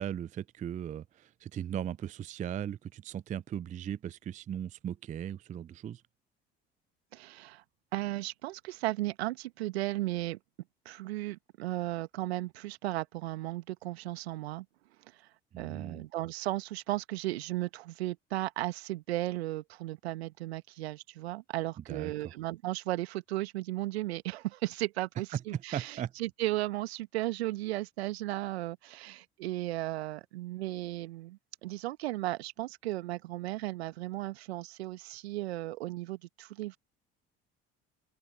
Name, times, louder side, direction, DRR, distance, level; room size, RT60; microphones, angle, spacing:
voice 1, 0.0-6.0 15.5-16.0 21.9-22.3 25.5-26.1, right 9 dB, 25° right, 0.4 m, -38 dB
voice 2, 7.1-7.6 7.9-10.4 10.8-14.6 15.6-36.8, right 17 dB, 75° right, 1.7 m, -35 dB
open air
figure-of-eight pair, 60°, 32 cm